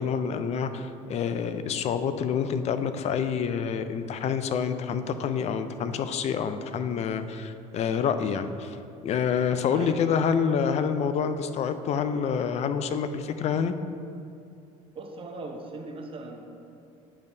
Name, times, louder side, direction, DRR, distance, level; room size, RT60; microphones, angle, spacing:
voice 1, 0.0-8.8 9.0-13.7, left 7 dB, 45° left, 10 dB, 0.4 m, -27 dB
voice 2, 14.9-16.4, right 2 dB, 35° right, 2 dB, 0.7 m, -39 dB
8.8 x 5.3 x 2.7 m, 2.5 s
supercardioid pair, 95°, 16 cm